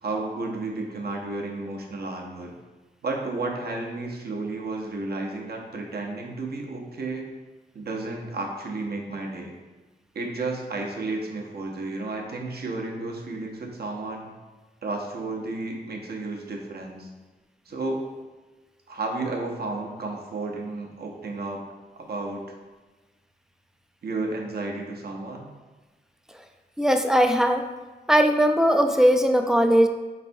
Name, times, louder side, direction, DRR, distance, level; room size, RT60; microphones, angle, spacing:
voice 1, 0.0-2.6 3.0-7.3 7.7-9.5 10.1-14.3 14.8-17.1 17.7-18.0 18.9-21.6 22.0-22.5 24.0-25.5, right 2 dB, 65° right, 1 dB, 0.7 m, -32 dB
voice 2, 26.8-27.6 28.1-29.9, equal, 5° right, 5 dB, 0.3 m, -19 dB
4.2 x 3.2 x 2.6 m, 1.2 s
cardioid pair, 55°, 17 cm